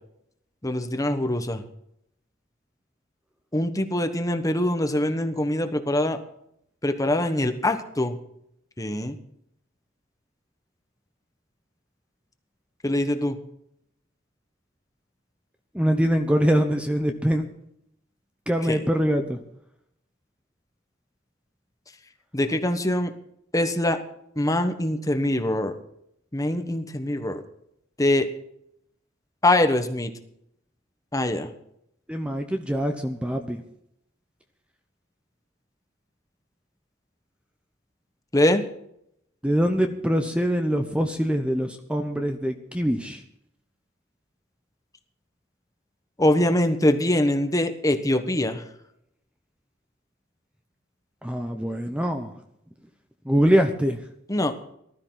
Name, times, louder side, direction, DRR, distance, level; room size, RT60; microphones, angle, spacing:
voice 1, 0.6-1.6 3.5-6.2 6.8-8.2 8.8-9.2 12.8-13.4 18.6-18.8 22.3-23.1 23.5-24.0 24.3-25.8 26.3-27.4 28.0-28.3 29.4-30.1 31.1-31.5 38.3-38.6 46.2-48.6 54.3-54.6, left 1 dB, 20° left, 7 dB, 1.2 m, -23 dB
voice 2, 15.7-17.4 18.5-19.4 32.1-33.6 39.4-43.2 51.2-52.3 53.2-54.0, equal, 5° right, 6 dB, 0.9 m, -23 dB
19.0 x 13.0 x 4.0 m, 0.74 s
head